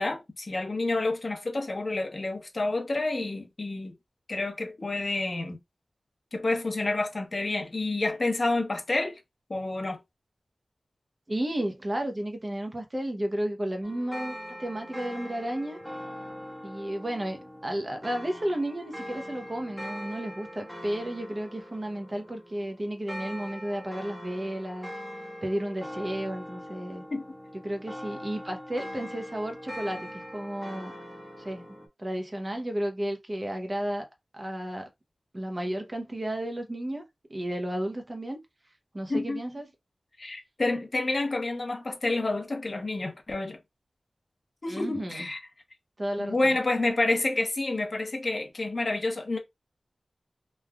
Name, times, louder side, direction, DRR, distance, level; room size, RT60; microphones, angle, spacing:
voice 1, 0.0-3.9 4.3-5.6 6.3-9.2 9.5-10.0 27.1-27.2 39.1-39.4 40.2-43.6 44.6-45.4 46.2-49.4, left 2 dB, 55° left, 0.8 m, -29 dB
voice 2, 11.3-15.8 16.6-24.9 25.4-27.0 27.6-30.9 31.4-34.1 34.3-34.9 35.3-37.0 37.3-38.4 38.9-39.6 44.7-45.3 46.0-46.6, right 1 dB, 35° right, 0.8 m, -33 dB
sound 1, 13.8-31.9, equal, 10° right, 0.9 m, -42 dB
3.1 x 2.4 x 2.3 m
wide cardioid pair, 65°, 0 cm